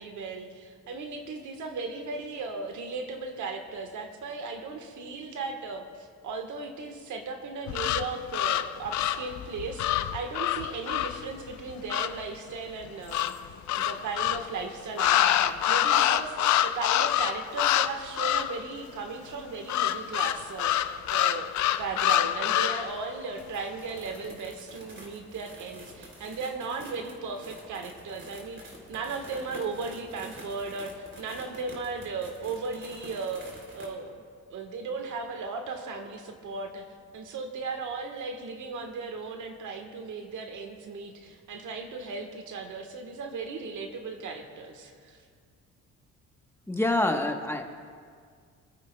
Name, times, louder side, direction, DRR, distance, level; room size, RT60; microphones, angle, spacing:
voice 1, 0.0-13.4 13.7-20.7 21.1-28.6 28.9-33.5 33.7-34.2 34.5-36.9 37.1-45.2, right 4 dB, 75° right, 4 dB, 1.4 m, -36 dB
sound 1, 7.7-12.2 13.1-14.5 15.0-17.9 18.2-18.6 19.7-22.9, left 12 dB, 70° left, 0.5 m, -26 dB
sound 2, 23.4-33.9, right 1 dB, 40° right, 3.1 m, -48 dB
voice 2, 46.7-47.6, left 2 dB, 10° left, 3 dB, 1.1 m, -26 dB
27.5 x 9.2 x 2.3 m, 2.1 s
cardioid pair, 90°, 30 cm